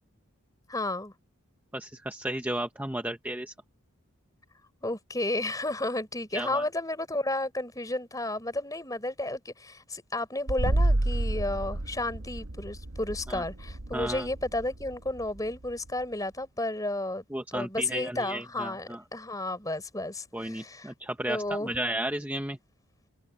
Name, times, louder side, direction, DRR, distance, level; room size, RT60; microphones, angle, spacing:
voice 1, 0.7-1.1 4.8-17.2 17.5-20.9 21.3-21.7, left 2 dB, 15° left, 4.2 m, -32 dB
voice 2, 1.7-3.5 6.3-6.6 13.3-13.4 13.9-14.3 17.3-19.0 20.3-22.6, right 1 dB, 10° right, 1.0 m, -33 dB
sound 1, 10.5-16.0, right 1 dB, 80° right, 1.3 m, -30 dB
head